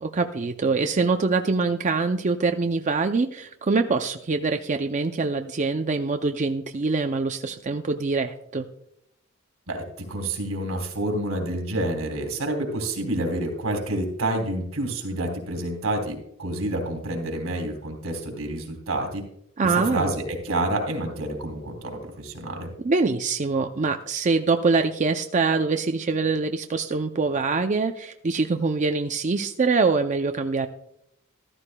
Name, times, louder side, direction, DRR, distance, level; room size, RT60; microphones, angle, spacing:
voice 1, 0.0-8.7 19.6-20.1 22.8-30.7, right 4 dB, 35° right, 6 dB, 0.5 m, -24 dB
voice 2, 9.7-19.2 19.6-22.7, right 1 dB, 85° right, 3 dB, 3.0 m, -28 dB
14.0 x 13.5 x 2.2 m, 0.76 s
head